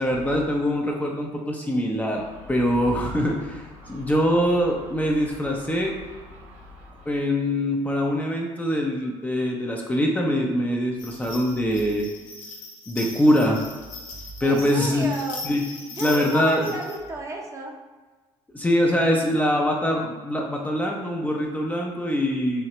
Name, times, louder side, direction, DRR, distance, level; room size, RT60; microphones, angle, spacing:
voice 1, 0.0-3.6 3.9-5.9 7.1-12.1 12.9-13.7 14.4-15.1 15.4-15.6 16.0-16.6 18.5-22.6, equal, 15° left, -1 dB, 0.6 m, -23 dB
Gull seagull, 2.1-7.2, left 2 dB, 65° right, 0.9 m, -46 dB
sound 1, 11.0-17.0, left 3 dB, 80° left, 0.8 m, -40 dB
voice 2, 14.4-15.4 15.9-17.8, right 2 dB, 25° right, 0 dB, 0.7 m, -33 dB
4.3 x 2.8 x 3.0 m, 1.3 s
supercardioid pair, 80°, 12 cm